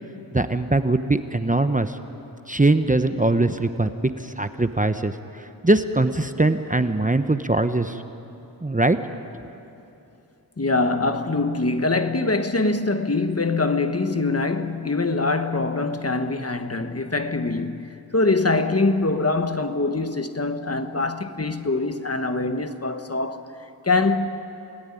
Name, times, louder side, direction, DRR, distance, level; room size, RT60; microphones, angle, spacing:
voice 1, 0.3-1.9 2.5-5.1 5.6-8.0 8.6-9.0, right 2 dB, 20° right, 0.9 m, -21 dB
voice 2, 10.6-23.5 23.8-24.4, left 3 dB, 35° left, 1.4 m, -23 dB
28.5 x 18.5 x 9.9 m
wide cardioid pair, 75°, 40 cm